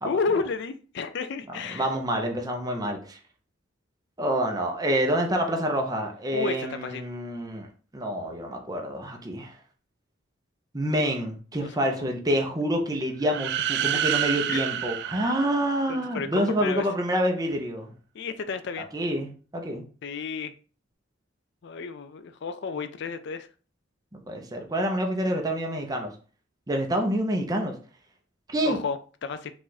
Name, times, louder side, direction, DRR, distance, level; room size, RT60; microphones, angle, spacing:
voice 1, 0.0-1.9 6.3-7.0 11.6-12.1 13.8-14.0 14.5-14.8 15.9-16.9 18.1-18.9 20.0-20.5 21.6-23.5 28.6-29.5, left 5 dB, 65° left, 0.4 m, -32 dB
voice 2, 1.7-3.2 4.2-7.7 7.9-9.6 10.7-17.9 18.9-19.9 24.1-26.1 26.7-27.7 28.5-28.8, equal, 20° right, 0.8 m, -27 dB
sound 1, 13.2-16.2, right 11 dB, 60° right, 0.3 m, -29 dB
4.8 x 2.5 x 4.0 m
head